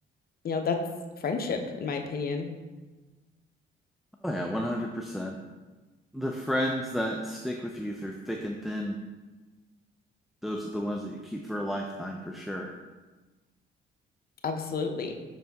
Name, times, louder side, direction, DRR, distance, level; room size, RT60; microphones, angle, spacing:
voice 1, 0.4-0.8 1.2-2.5 14.4-15.1, left 5 dB, 50° left, 4 dB, 0.8 m, -30 dB
voice 2, 4.2-5.4 6.1-9.0 10.4-12.7, equal, ahead, 1 dB, 0.5 m, -32 dB
6.3 x 4.3 x 3.5 m, 1.2 s
cardioid pair, 90°, 20 cm